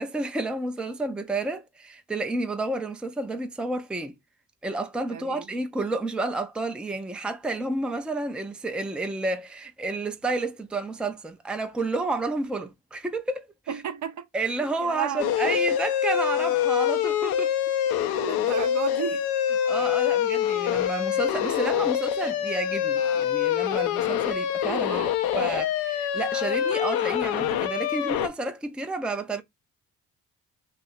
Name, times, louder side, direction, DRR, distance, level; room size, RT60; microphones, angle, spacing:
voice 1, 0.0-4.1 4.6-13.8 14.3-17.5 19.7-29.4, right 2 dB, 5° right, 0.5 m, -30 dB
voice 2, 5.1-5.5 12.6-12.7 13.7-14.2 14.6-15.6 18.2-19.3 24.9-25.1, right 7 dB, 50° right, 0.7 m, -33 dB
sound 1, 15.2-28.3, left 10 dB, 75° left, 0.6 m, -25 dB
2.8 x 2.5 x 4.0 m
supercardioid pair, 55°, 37 cm